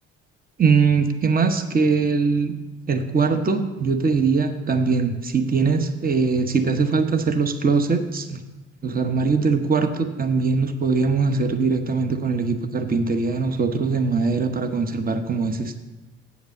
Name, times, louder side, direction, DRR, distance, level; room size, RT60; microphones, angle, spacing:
voice 1, 0.6-2.5 2.9-8.4 8.8-15.8, right 4 dB, 30° right, 8 dB, 1.0 m, -21 dB
8.1 x 5.2 x 7.1 m, 1.1 s
hypercardioid pair, 60°, 30 cm